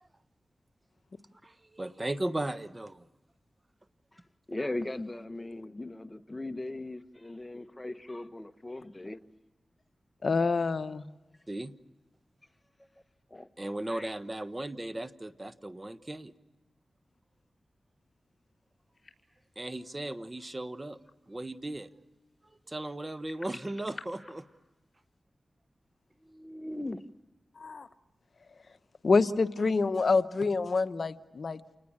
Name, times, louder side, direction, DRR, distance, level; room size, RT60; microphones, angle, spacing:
voice 1, 1.4-3.0 11.5-11.7 13.6-16.3 19.6-21.0 21.3-21.9 22.7-24.5, right 1 dB, 30° right, 13 dB, 1.2 m, -36 dB
voice 2, 4.5-9.2 12.8-12.9 13.3-13.5 13.9-14.1 26.2-27.0, left 2 dB, 25° left, 10 dB, 1.3 m, -39 dB
voice 3, 10.2-11.0 27.6-27.9 29.0-31.6, left 4 dB, 65° left, 11 dB, 1.0 m, -27 dB
sound 1, 18.9-25.2, left 3 dB, 45° left, 5.7 m, -53 dB
28.5 x 19.5 x 8.7 m, 1.1 s
cardioid pair, 50°, 0 cm